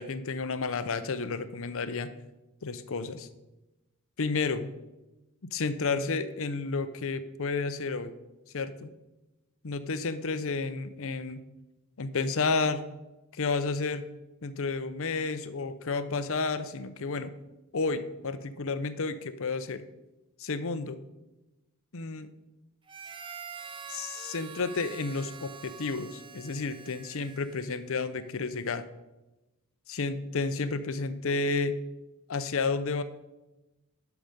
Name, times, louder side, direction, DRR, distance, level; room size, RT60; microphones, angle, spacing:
voice 1, 0.0-2.1 2.6-3.3 4.2-4.7 5.5-8.1 8.5-8.9 9.6-11.4 12.0-12.8 13.3-14.0 14.4-17.3 17.7-19.8 20.4-21.0 21.9-22.3 23.9-28.8 29.9-31.7 32.3-33.0, left 4 dB, 65° left, 12 dB, 0.7 m, -31 dB
Harmonica, 22.9-27.9, right 6 dB, 20° right, 0.6 m, -45 dB
11.5 x 6.0 x 5.2 m, 1.0 s
head